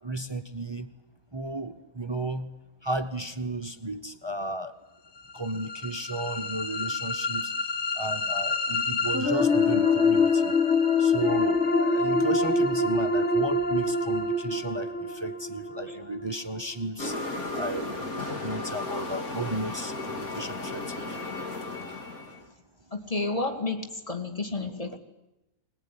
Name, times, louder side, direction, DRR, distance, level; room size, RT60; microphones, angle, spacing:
voice 1, 0.0-0.9 1.3-2.5 2.8-4.7 5.3-7.5 8.0-10.5 11.0-17.1 17.5-21.2, right 2 dB, 25° right, 9 dB, 0.8 m, -34 dB
sound 1, 5.3-17.3, left 3 dB, 50° left, 1.9 m, -26 dB
sound 2, 17.0-22.5, left 2 dB, 75° left, 2.6 m, -34 dB
voice 2, 22.9-25.0, left 3 dB, 25° left, 4 dB, 2.2 m, -31 dB
21.5 x 20.0 x 9.9 m, 0.95 s
omnidirectional pair, 1.5 m